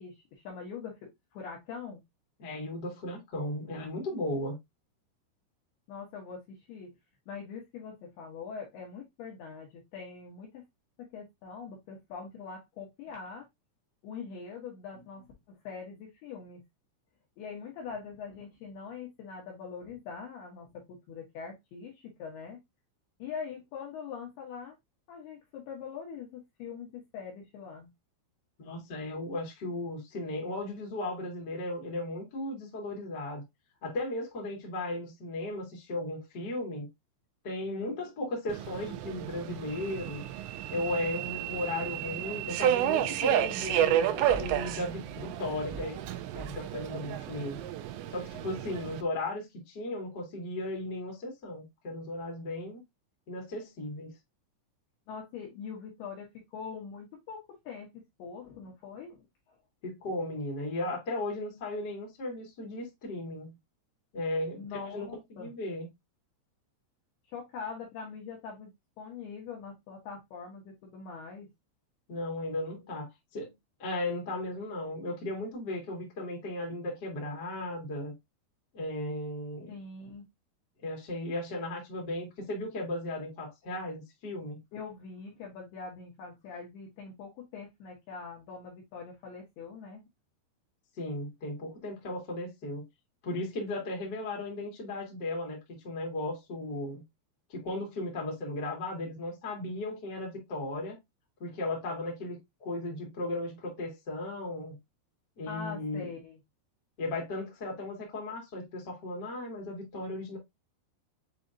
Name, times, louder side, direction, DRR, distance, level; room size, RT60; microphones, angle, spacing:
voice 1, 0.0-2.0 5.9-6.9 7.3-10.6 11.1-13.5 14.0-16.6 17.4-22.6 23.2-24.8 25.1-27.9 55.1-57.9 58.2-59.6 64.6-65.5 67.3-68.7 69.0-71.5 79.7-80.2 84.7-90.0 105.5-106.4, left 5 dB, 75° left, 2.4 m, -43 dB
voice 2, 2.4-4.5 28.6-33.4 33.8-36.9 37.4-40.2 40.7-46.0 46.3-47.6 48.1-52.8 53.3-54.1 59.8-63.6 64.1-65.9 72.1-73.5 73.8-78.1 78.7-79.7 80.8-84.6 91.0-92.8 93.2-97.0 97.5-101.0 101.4-104.7 105.4-106.1 107.0-110.4, left 1 dB, 55° left, 1.1 m, -36 dB
Subway metro underground, 38.5-49.0, right 11 dB, 85° right, 2.6 m, -31 dB
7.6 x 2.8 x 2.5 m
omnidirectional pair, 5.7 m